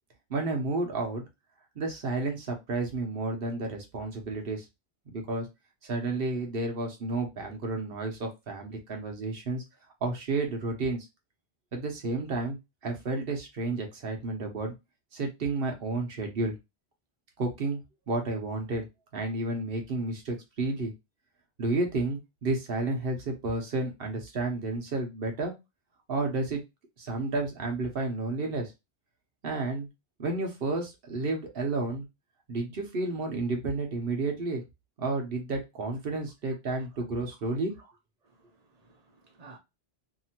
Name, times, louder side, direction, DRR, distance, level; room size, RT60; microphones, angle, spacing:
voice 1, 0.3-1.2 1.8-4.6 5.1-5.5 5.8-9.6 10.0-11.1 11.7-12.6 12.8-14.7 15.1-16.5 17.4-17.8 18.1-18.9 19.1-20.9 21.6-25.5 26.1-26.6 27.0-28.7 29.4-29.9 30.2-32.0 32.5-34.6 35.0-37.7, right 3 dB, 65° right, 1.0 m, -31 dB
voice 2, 37.3-37.9 38.2-39.6, right 3 dB, 40° right, 0.8 m, -56 dB
2.8 x 2.6 x 2.7 m
omnidirectional pair, 1.1 m